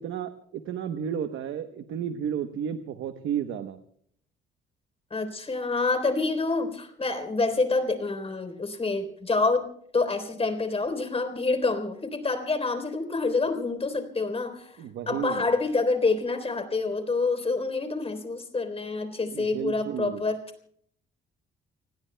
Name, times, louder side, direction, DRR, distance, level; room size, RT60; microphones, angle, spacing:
voice 1, 0.0-3.8 14.8-15.5 19.3-20.2, right 9 dB, 80° right, 9 dB, 1.0 m, -32 dB
voice 2, 5.1-9.7 9.9-14.8 15.1-20.4, left 3 dB, 30° left, 8 dB, 3.6 m, -27 dB
30.0 x 20.0 x 2.2 m, 0.63 s
cardioid pair, 90°, 20 cm